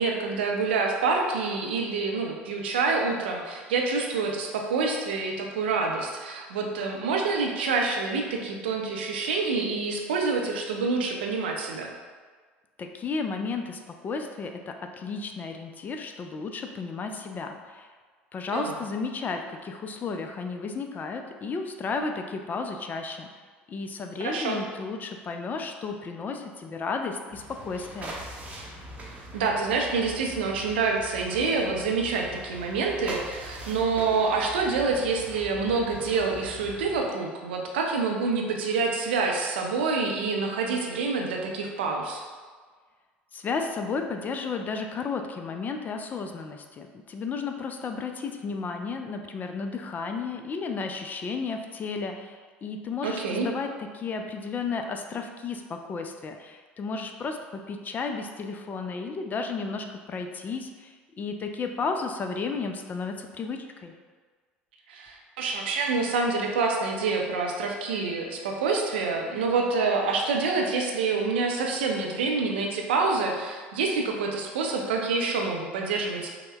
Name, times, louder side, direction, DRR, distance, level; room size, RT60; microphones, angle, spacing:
voice 1, 0.0-11.9 18.5-18.8 24.2-24.6 29.0-42.2 53.0-53.5 64.9-76.3, right 4 dB, 70° right, 1 dB, 0.5 m, -27 dB
voice 2, 12.8-17.9 18.3-23.3 23.7-28.2 43.3-63.9, left 4 dB, 30° left, 5 dB, 0.3 m, -33 dB
sound 1, 27.3-37.1, right 1 dB, 25° right, 0.7 m, -42 dB
5.4 x 2.1 x 2.2 m, 1.5 s
figure-of-eight pair, 65°, 6 cm